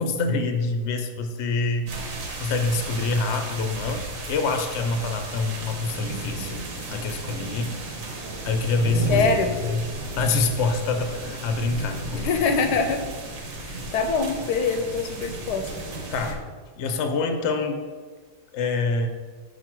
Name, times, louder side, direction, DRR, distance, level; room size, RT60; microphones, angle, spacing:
voice 1, 0.0-1.9 2.4-7.7 8.4-9.2 9.6-9.8 10.2-12.3 16.1-16.4 16.8-17.9 18.5-19.1, left 3 dB, 55° left, 6 dB, 0.8 m, -26 dB
sound 1, 1.9-16.3, right 2 dB, 80° right, 1.7 m, -34 dB
voice 2, 9.1-9.6 12.1-13.1 13.6-15.9, left 4 dB, 75° left, 7 dB, 1.1 m, -24 dB
6.2 x 4.8 x 4.6 m, 1.5 s
omnidirectional pair, 1.8 m